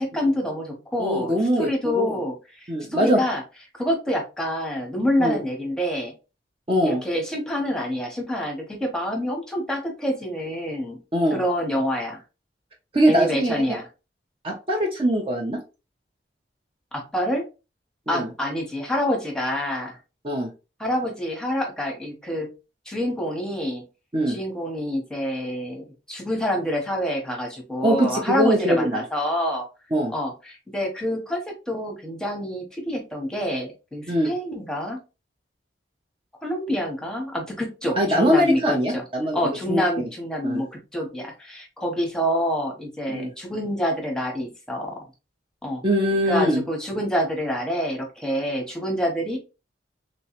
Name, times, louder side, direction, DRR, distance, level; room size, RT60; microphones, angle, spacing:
voice 1, 0.0-3.4 3.8-6.1 6.8-11.0 11.3-12.2 13.1-13.9 16.9-17.5 18.1-20.0 20.8-22.5 22.9-23.8 24.3-29.7 30.1-35.0 36.4-39.0 39.3-45.1 45.6-45.8 46.3-49.4, equal, 5° left, 1 dB, 0.9 m, -27 dB
voice 2, 1.0-2.2 2.7-3.2 5.2-5.4 6.7-7.0 11.1-11.4 12.9-13.5 14.4-15.6 18.1-18.3 20.2-20.5 24.1-24.4 27.8-29.0 29.9-30.1 34.1-34.3 38.0-39.4 39.7-40.0 40.4-40.6 43.1-43.3 45.8-46.6, equal, 30° right, 1 dB, 0.6 m, -22 dB
3.2 x 3.0 x 2.9 m, 0.29 s
head